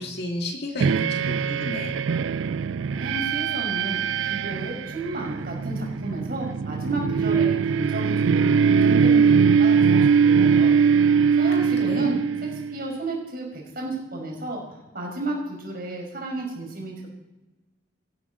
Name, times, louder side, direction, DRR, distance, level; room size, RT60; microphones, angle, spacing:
voice 1, 0.0-2.0 11.5-12.2, left 1 dB, 60° left, 3 dB, 2.3 m, -32 dB
sound 1, 0.8-12.9, right 6 dB, 90° right, 0.4 m, -21 dB
voice 2, 2.8-10.7 11.3-12.2 12.7-17.1, right 2 dB, 50° right, -1 dB, 5.3 m, -32 dB
18.0 x 10.0 x 5.1 m, 1.1 s
head